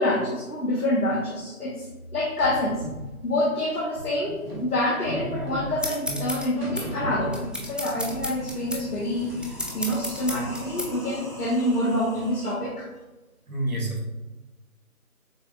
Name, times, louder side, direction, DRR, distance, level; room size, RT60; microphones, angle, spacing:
voice 1, 0.0-2.8 3.2-12.9, left 1 dB, 85° left, -4 dB, 1.1 m, -27 dB
sound 1, 2.4-7.8 8.1-9.6, equal, 40° right, 1.2 m, -36 dB
sound 2, 5.8-10.9, left 1 dB, ahead, 0.3 m, -34 dB
sound 3, 7.4-12.5, right 1 dB, 30° left, 0.8 m, -42 dB
voice 2, 13.5-14.1, right 1 dB, 70° right, 0 dB, 1.2 m, -28 dB
6.7 x 2.2 x 2.4 m, 1.1 s
figure-of-eight pair, 165°, 45 cm